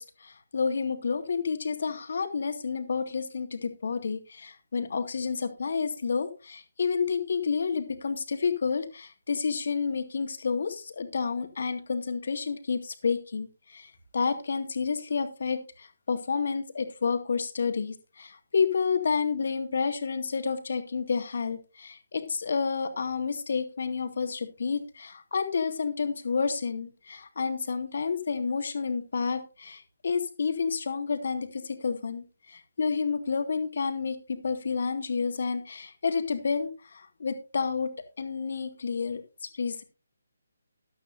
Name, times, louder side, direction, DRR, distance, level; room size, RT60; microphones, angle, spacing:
voice 1, 0.0-39.8, left 5 dB, 55° left, 7 dB, 2.1 m, -30 dB
14.0 x 12.0 x 2.7 m, 0.31 s
figure-of-eight pair, 145°, 0 cm